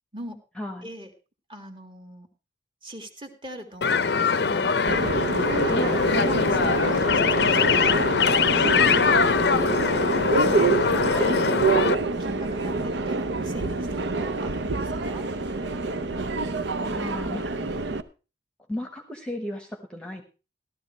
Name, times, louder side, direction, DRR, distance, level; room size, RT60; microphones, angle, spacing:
voice 1, 0.6-0.9 5.7-6.0 16.9-17.5 18.7-20.2, left 1 dB, 5° left, 4 dB, 1.1 m, -34 dB
voice 2, 1.5-2.3 2.8-5.0 5.4-10.1 10.4-11.5 11.8-15.8, equal, 25° right, 4 dB, 1.9 m, -40 dB
sound 1, 3.8-11.9, left 5 dB, 60° left, 0.6 m, -22 dB
Subway metro underground, 4.9-18.0, right 3 dB, 65° right, 0.7 m, -27 dB
15.0 x 12.5 x 3.1 m, 0.32 s
head